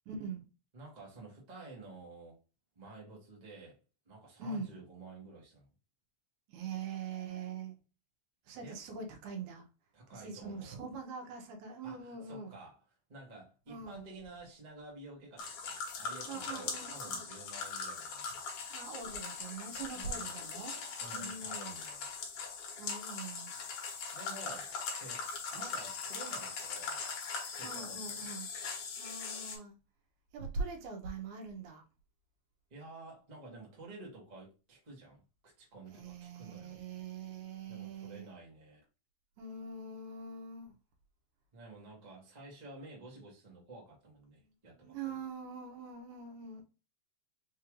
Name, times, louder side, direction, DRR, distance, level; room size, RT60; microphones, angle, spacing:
voice 1, 0.1-0.5 4.4-4.8 6.5-7.8 8.5-9.7 10.1-12.6 13.7-14.1 16.2-17.3 18.7-20.7 21.1-21.8 22.8-23.6 27.6-28.5 29.0-29.7 30.3-31.8 35.9-38.3 39.4-40.7 44.3-44.4 44.8-46.6, right 4 dB, 85° right, 2.3 m, -43 dB
voice 2, 0.7-2.4 2.7-3.8 4.0-5.7 8.6-8.8 9.9-10.8 11.8-12.8 13.1-18.4 19.8-20.4 21.0-22.1 24.1-27.0 27.5-28.2 32.7-35.2 35.6-36.8 37.7-38.8 41.5-45.1, right 3 dB, 45° right, 0.5 m, -51 dB
sound 1, 15.4-29.6, left 5 dB, 70° left, 2.3 m, -40 dB
5.4 x 2.5 x 3.0 m
omnidirectional pair, 3.5 m